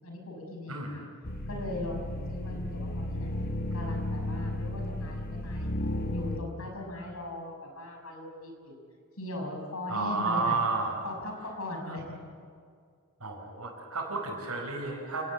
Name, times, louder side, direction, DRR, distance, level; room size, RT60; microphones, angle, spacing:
voice 1, 0.0-1.0 1.5-3.3 3.7-5.7 6.1-8.8 9.2-10.6 11.0-12.0, left 1 dB, 75° left, 2 dB, 6.2 m, -39 dB
voice 2, 0.7-1.0 9.9-11.0 11.9-12.0 13.2-15.2, right 3 dB, 80° right, -3 dB, 5.5 m, -31 dB
sound 1, 1.2-6.4, left 1 dB, 45° left, 1.5 m, -33 dB
29.0 x 19.0 x 7.6 m, 2.1 s
head